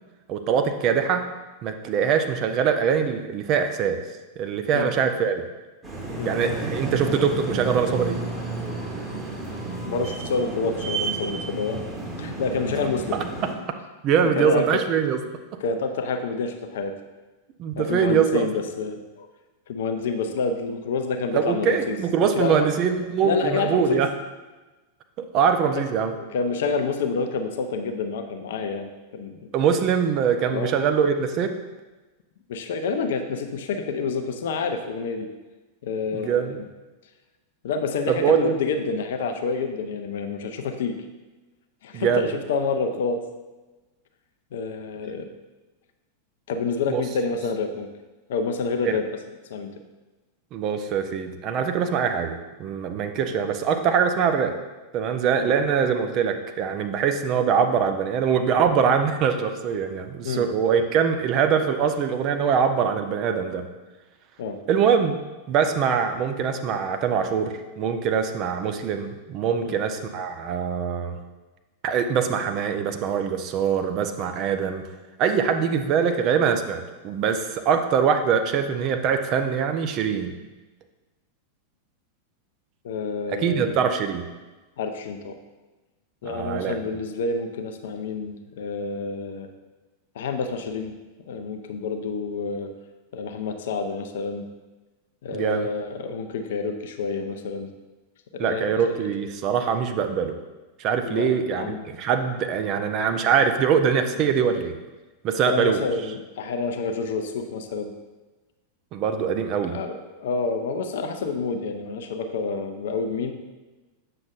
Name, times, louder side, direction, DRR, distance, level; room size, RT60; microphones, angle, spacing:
voice 1, 0.3-1.2 1.6-4.0 4.4-5.4 6.3-8.2 13.4-13.5 14.0-15.2 17.6-18.5 21.3-24.1 25.2-26.1 29.5-31.5 36.1-36.6 38.1-38.5 41.9-42.3 46.9-47.0 48.9-49.0 50.5-54.5 54.9-63.6 64.7-65.2 65.5-71.2 71.8-74.8 75.2-80.3 83.3-84.2 86.2-86.7 95.3-95.7 98.4-100.4 100.8-104.8 105.2-105.8 108.9-109.8, right 7 dB, 40° right, 7 dB, 0.5 m, -23 dB
sound 1, 5.8-13.5, right 3 dB, 15° right, 1.3 m, -31 dB
voice 2, 9.8-11.8 12.2-13.2 14.4-14.8 15.6-16.9 17.7-19.3 19.7-22.0 22.3-22.7 23.2-24.0 26.2-29.4 30.5-30.8 32.5-35.3 35.8-36.6 37.6-41.0 41.8-43.2 44.5-45.3 46.5-47.9 48.3-49.0 49.5-49.7 53.2-53.3 55.3-55.5 60.2-60.5 64.4-64.6 69.6-69.8 82.8-83.8 84.8-85.4 86.2-89.5 90.1-91.0 91.3-92.7 93.1-94.5 95.2-97.7 98.3-99.1 101.0-101.8 105.5-107.9 109.6-113.3, left 4 dB, 55° left, 7 dB, 0.6 m, -28 dB
7.7 x 6.2 x 2.5 m, 1.2 s
figure-of-eight pair, 90°, 0 cm